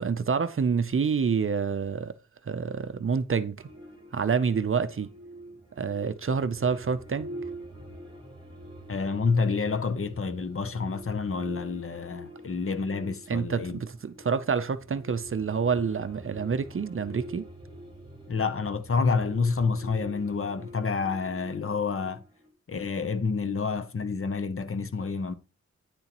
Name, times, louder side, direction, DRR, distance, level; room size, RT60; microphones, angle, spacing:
voice 1, 0.0-2.1 2.4-3.6 4.1-5.1 5.8-7.3 13.3-17.5, right 6 dB, 45° right, 0.5 m, -27 dB
sound 1, 3.6-22.5, equal, 15° right, 2.0 m, -45 dB
voice 2, 8.9-13.8 18.3-22.2 22.7-25.3, left 4 dB, 45° left, 0.7 m, -28 dB
9.7 x 6.9 x 3.0 m
wide cardioid pair, 105°, 30 cm